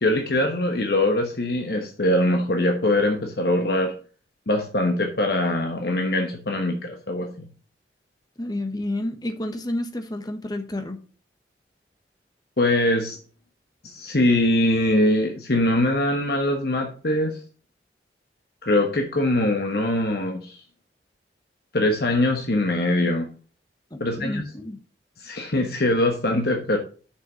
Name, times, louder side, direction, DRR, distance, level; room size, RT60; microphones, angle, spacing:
voice 1, 0.0-3.9 4.5-7.5 12.6-13.2 13.8-17.4 18.6-20.6 21.7-23.3 24.0-24.4 25.2-26.8, left 1 dB, 60° left, 3 dB, 1.1 m, -22 dB
voice 2, 8.4-11.0 23.9-24.8, left 1 dB, 20° left, 7 dB, 1.1 m, -30 dB
6.7 x 5.8 x 6.2 m, 0.39 s
head